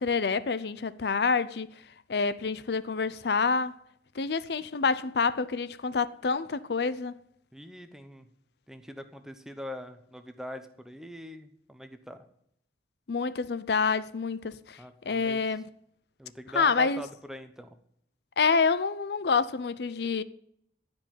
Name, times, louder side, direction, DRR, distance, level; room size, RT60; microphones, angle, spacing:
voice 1, 0.0-1.7 2.1-3.8 4.2-7.2 13.1-14.8 15.1-15.6 16.6-17.0 18.4-20.2, left 5 dB, 65° left, 0.5 m, -27 dB
voice 2, 7.5-8.3 8.7-12.2 14.8-15.6 16.2-17.8, equal, 5° right, 0.9 m, -43 dB
15.5 x 5.3 x 9.2 m
head